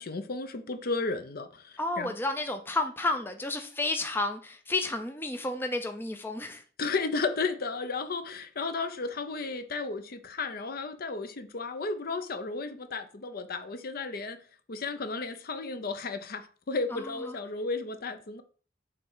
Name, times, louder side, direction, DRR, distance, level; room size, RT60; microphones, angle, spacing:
voice 1, 0.0-2.2 6.8-14.4 14.7-18.4, left 3 dB, 50° left, 0.6 m, -33 dB
voice 2, 1.8-6.6 16.9-17.4, left 2 dB, 10° left, 0.5 m, -31 dB
6.8 x 3.2 x 5.5 m
head